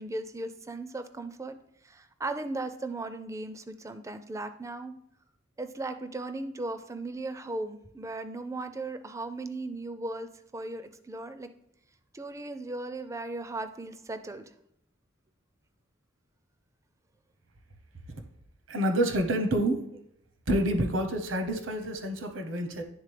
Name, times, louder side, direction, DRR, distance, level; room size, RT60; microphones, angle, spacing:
voice 1, 0.0-1.6 1.8-4.9 5.6-11.5 12.1-14.5, right 2 dB, 15° right, 10 dB, 0.4 m, -37 dB
voice 2, 18.7-20.0 20.5-22.8, right 1 dB, 75° right, 6 dB, 0.8 m, -28 dB
9.6 x 3.6 x 3.3 m, 0.75 s
head